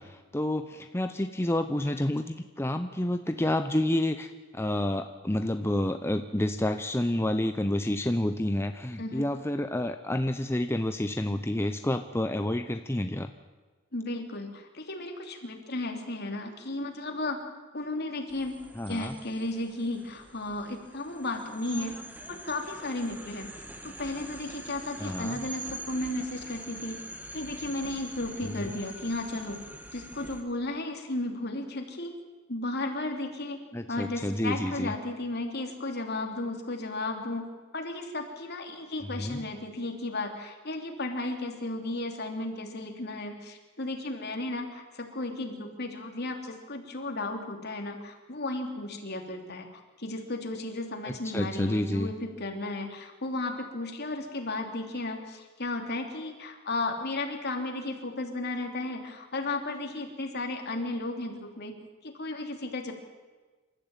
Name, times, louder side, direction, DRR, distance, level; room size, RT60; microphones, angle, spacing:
voice 1, 0.0-13.3 18.7-19.1 25.0-25.4 28.5-28.7 33.7-34.9 39.2-39.4 51.0-52.1, left 1 dB, 10° left, 7 dB, 0.8 m, -29 dB
voice 2, 13.9-17.4 17.7-18.6 18.9-22.0 22.3-27.0 27.3-29.6 29.9-32.2 32.5-33.6 33.9-37.5 37.7-49.7 50.0-61.7 62.0-62.9, left 2 dB, 55° left, 3 dB, 3.3 m, -34 dB
sound 1, 18.3-30.4, right 1 dB, 10° right, 1.9 m, -44 dB
27.5 x 14.0 x 9.1 m, 1.3 s
head